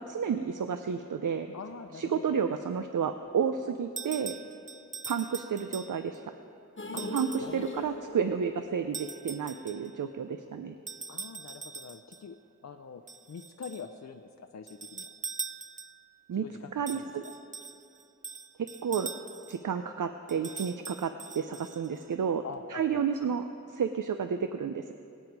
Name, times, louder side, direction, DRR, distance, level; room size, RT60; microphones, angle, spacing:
voice 1, 0.0-1.5 1.9-4.3 5.1-6.3 7.1-10.7 16.3-16.5 16.7-17.2 18.6-19.1 19.5-22.4 22.7-24.9, right 7 dB, 90° right, 9 dB, 0.5 m, -31 dB
voice 2, 1.5-2.4 6.9-7.1 7.4-7.9 11.1-12.4 12.6-13.0 13.3-15.1 16.4-17.1 22.4-23.0, left 5 dB, 60° left, 6 dB, 0.6 m, -44 dB
sound 1, 4.0-6.2 7.0-7.6 8.9-9.9 10.9-12.2 13.1-13.9 14.7-16.1 16.9-19.6 20.3-22.0, right 5 dB, 25° right, 0.4 m, -42 dB
sound 2, 6.8-10.9 11.2-11.3 11.6-11.7, left 1 dB, 40° left, 1.1 m, -42 dB
23.0 x 9.0 x 4.6 m, 2.6 s
wide cardioid pair, 85°, 30 cm